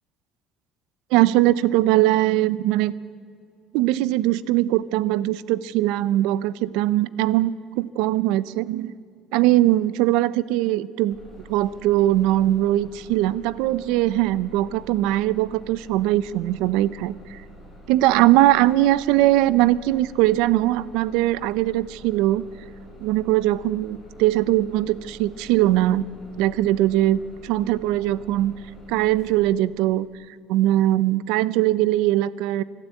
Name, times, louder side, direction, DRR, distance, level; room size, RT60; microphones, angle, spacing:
voice 1, 1.1-2.9 3.7-9.0 9.3-11.2 11.5-17.4 17.9-22.4 23.0-26.0 26.4-28.5 28.9-30.1 30.5-32.6, right 15 dB, 80° right, 19 dB, 0.7 m, -21 dB
Bus, 11.1-29.3, equal, 5° left, 5.0 m, -47 dB
24.5 x 12.5 x 8.4 m, 2.4 s
cardioid pair, 180°, 0 cm